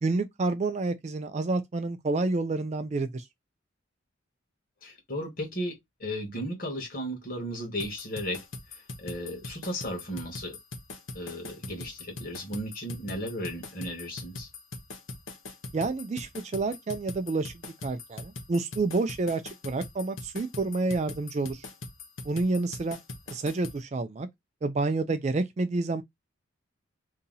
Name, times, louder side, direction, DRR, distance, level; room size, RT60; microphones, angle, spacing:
voice 1, 0.0-3.2 15.7-17.5 17.8-21.7 22.2-23.0 23.3-24.3 24.6-26.0, right 3 dB, 35° right, 0.3 m, -29 dB
voice 2, 4.8-8.4 8.7-10.6 11.1-14.5, equal, 45° left, 1.3 m, -35 dB
sound 1, 7.8-23.8, left 3 dB, 75° left, 0.8 m, -41 dB
2.8 x 2.7 x 3.8 m
head